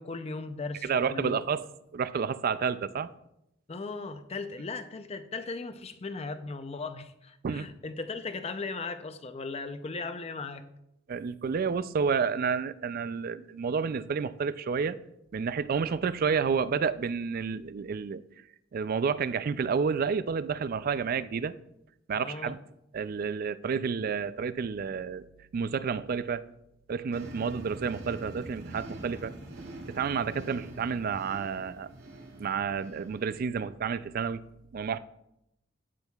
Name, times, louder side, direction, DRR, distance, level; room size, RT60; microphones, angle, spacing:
voice 1, 0.0-1.5 3.7-10.6 22.2-22.5, left 3 dB, 30° left, 0.5 m, -37 dB
voice 2, 0.8-1.6 1.9-3.1 7.4-7.7 11.1-15.0 15.3-18.2 18.7-21.5 22.1-22.6 22.9-25.2 25.5-26.4 26.9-29.3 29.9-31.9 32.4-34.4 34.7-35.0, right 6 dB, 45° right, 0.3 m, -30 dB
sound 1, 27.1-33.5, right 1 dB, 70° right, 3.2 m, -45 dB
12.0 x 8.7 x 2.3 m
head